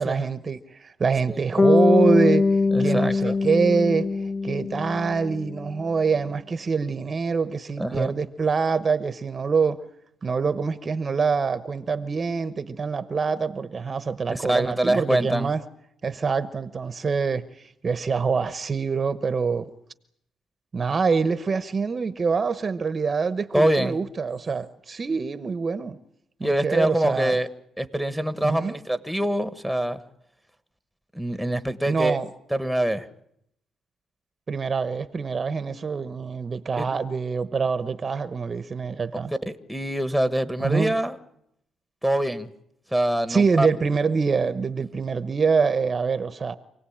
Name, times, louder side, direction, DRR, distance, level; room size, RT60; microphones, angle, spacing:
voice 1, 0.0-9.8 10.2-15.6 16.0-19.7 20.7-26.0 26.4-27.4 28.4-28.8 31.9-32.3 34.5-39.3 40.6-40.9 43.3-46.5, right 5 dB, 35° right, 1.0 m, -25 dB
Bass guitar, 1.6-5.7, left 3 dB, 40° left, 1.0 m, -22 dB
voice 2, 2.7-3.3 7.8-8.1 14.3-15.5 23.5-24.0 26.4-27.5 27.8-30.0 31.1-32.2 32.5-33.1 36.8-36.9 39.4-41.1 42.0-42.5 42.9-43.7, right 1 dB, ahead, 1.5 m, -24 dB
27.0 x 18.0 x 8.8 m
cardioid pair, 90°, 0 cm